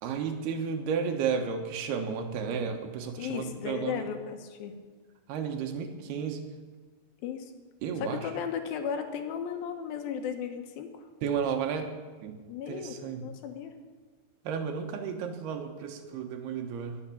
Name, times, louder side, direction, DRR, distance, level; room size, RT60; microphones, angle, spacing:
voice 1, 0.0-4.1 5.3-6.4 7.8-8.3 11.2-11.9 12.2-12.4 12.7-13.3 14.4-17.0, right 6 dB, 75° right, 5 dB, 3.1 m, -32 dB
voice 2, 3.2-4.8 7.2-7.5 8.0-11.0 12.5-13.7, left 7 dB, 70° left, 6 dB, 2.7 m, -35 dB
21.5 x 7.3 x 7.3 m, 1.4 s
omnidirectional pair, 4.8 m